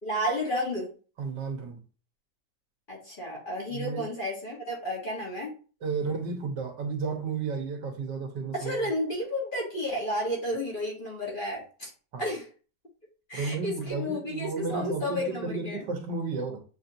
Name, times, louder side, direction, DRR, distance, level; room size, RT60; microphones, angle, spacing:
voice 1, 0.0-0.9 2.9-5.5 8.5-11.9 12.2-12.5 13.3-15.8, equal, 35° left, 1.3 m, -32 dB
voice 2, 1.2-1.8 3.7-4.1 5.8-8.9 12.1-12.3 13.3-16.6, right 4 dB, 85° right, 1.6 m, -33 dB
7.3 x 2.7 x 2.6 m
omnidirectional pair, 1.8 m